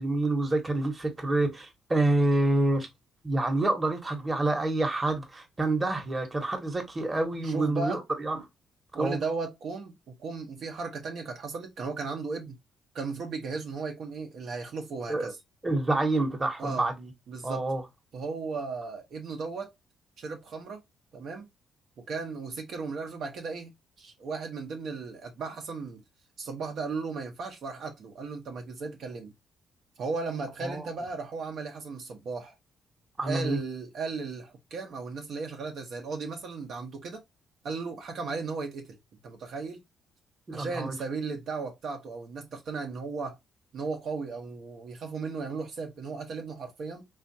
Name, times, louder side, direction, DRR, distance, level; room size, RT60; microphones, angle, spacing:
voice 1, 0.0-2.9 3.2-8.4 9.0-9.2 15.1-15.3 15.6-17.1 17.4-17.8 30.6-30.9 33.2-33.6 40.5-40.9, right 2 dB, 25° right, 1.0 m, -27 dB
voice 2, 7.4-8.0 8.9-12.6 12.9-15.4 16.6-16.9 17.3-17.7 18.1-19.7 20.2-20.8 21.1-21.5 22.1-23.7 24.0-26.0 26.4-29.3 30.0-32.6 33.3-37.2 37.6-39.0 39.2-39.8 40.5-43.4 43.7-47.0, right 4 dB, 65° right, 0.8 m, -36 dB
3.4 x 2.5 x 2.6 m
cardioid pair, 90°, 0 cm